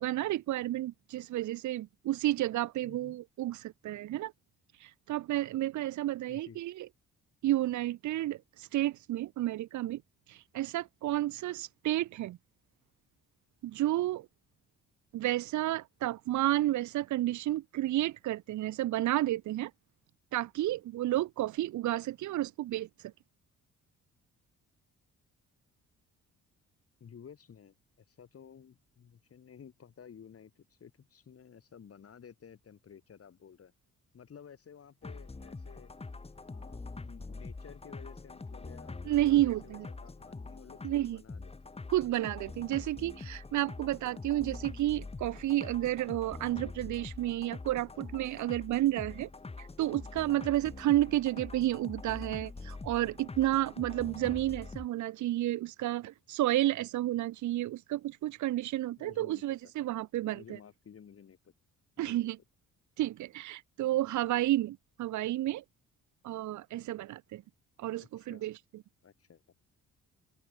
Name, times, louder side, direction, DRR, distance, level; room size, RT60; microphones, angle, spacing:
voice 1, 0.0-4.3 4.8-6.9 7.4-10.0 10.3-12.4 13.6-14.3 15.1-19.7 20.3-22.9 39.0-39.9 40.8-41.2 41.9-49.3 49.6-60.6 62.0-62.4 63.0-65.6 66.2-67.4 67.8-68.8, right 15 dB, 75° right, 0.9 m, -31 dB
voice 2, 2.8-3.2 6.3-6.6 27.0-33.7 34.1-35.9 36.5-41.5 59.0-59.7 60.3-61.5 62.0-62.3 68.0-68.5 69.0-69.4, left 7 dB, 50° left, 7.3 m, -54 dB
sound 1, 35.0-54.9, left 3 dB, 20° left, 2.2 m, -44 dB
open air
cardioid pair, 90°, 30 cm